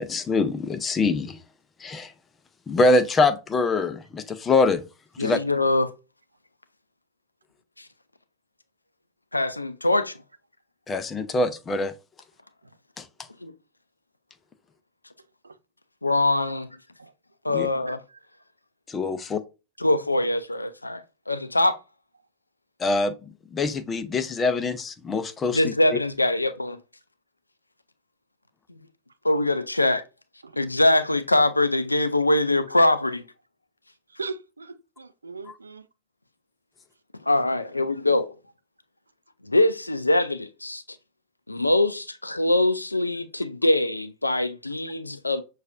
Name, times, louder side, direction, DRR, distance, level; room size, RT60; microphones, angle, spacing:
voice 1, 0.0-1.4 1.8-2.1 2.7-4.8 5.2-5.4 10.9-11.9 13.0-13.1 17.5-17.7 18.9-19.2 22.8-23.1 23.5-25.7, left 3 dB, 20° left, 0.5 m, -24 dB
voice 2, 5.2-5.9 7.8-7.9 9.3-10.2 13.4-13.5 16.0-16.7 17.4-18.0 19.8-21.8 25.5-26.8 28.7-28.8 29.2-30.0 30.6-33.2 37.3-38.3 39.4-40.8 41.5-45.4, left 2 dB, 85° left, 0.4 m, -23 dB
voice 3, 34.2-35.8, right 4 dB, 80° right, 0.4 m, -38 dB
6.3 x 2.4 x 2.5 m
figure-of-eight pair, 90°, 0 cm